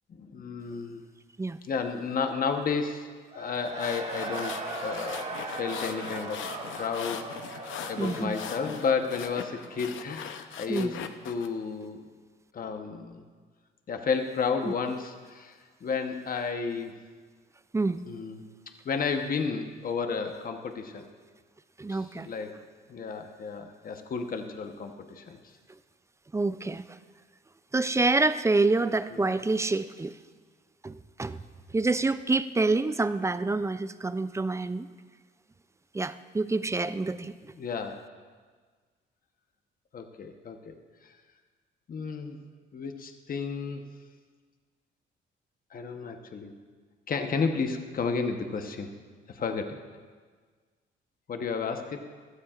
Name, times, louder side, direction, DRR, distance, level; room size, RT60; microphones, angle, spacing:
voice 1, 0.1-1.1 1.6-3.1 3.3-4.5 4.8-6.4 6.8-7.2 7.9-11.0 11.2-12.0 12.5-13.2 13.9-16.9 18.1-18.5 18.8-21.1 21.9-22.5 22.9-25.4 29.1-29.4 37.6-38.0 39.9-40.7 41.0-41.1 41.9-42.4 42.7-43.8 45.7-46.5 47.1-48.9 49.3-49.8 51.3-52.0, left 5 dB, 45° left, 5 dB, 1.0 m, -32 dB
Cheering / Crowd, 3.3-10.0, right 3 dB, 35° right, 1.3 m, -39 dB
sound 1, 3.6-11.5, left 8 dB, 80° left, 0.7 m, -40 dB
voice 2, 8.0-8.4 10.7-11.0 17.7-18.0 21.8-22.3 26.3-26.8 27.7-30.1 30.8-31.4 31.7-34.9 35.9-37.3, right 3 dB, 15° right, 12 dB, 0.4 m, -27 dB
16.0 x 13.0 x 2.5 m, 1.5 s
cardioid pair, 90°, 20 cm